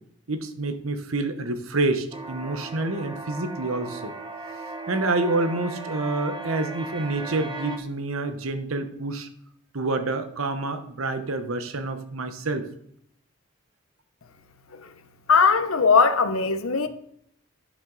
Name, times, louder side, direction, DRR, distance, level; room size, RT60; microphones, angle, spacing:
voice 1, 0.3-4.1 4.9-9.3 9.7-12.7, right 2 dB, 90° right, 1.1 m, -28 dB
sound 1, 2.1-7.8, right 2 dB, 20° right, 0.9 m, -37 dB
voice 2, 15.3-16.9, left 5 dB, 85° left, 0.9 m, -20 dB
10.5 x 7.5 x 4.0 m
head